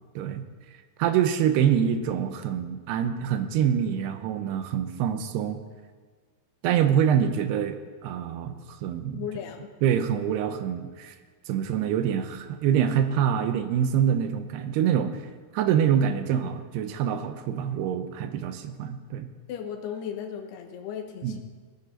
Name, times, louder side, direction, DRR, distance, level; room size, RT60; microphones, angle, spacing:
voice 1, 0.2-0.5 1.0-5.7 6.6-9.2 9.8-11.1 11.5-15.3 15.5-19.3 21.2-21.4, right 9 dB, 80° right, 9 dB, 2.7 m, -25 dB
voice 2, 9.1-9.7 11.6-11.8 19.5-21.4, left 8 dB, 75° left, 4 dB, 3.1 m, -36 dB
19.5 x 9.6 x 3.9 m, 1.6 s
omnidirectional pair, 4.8 m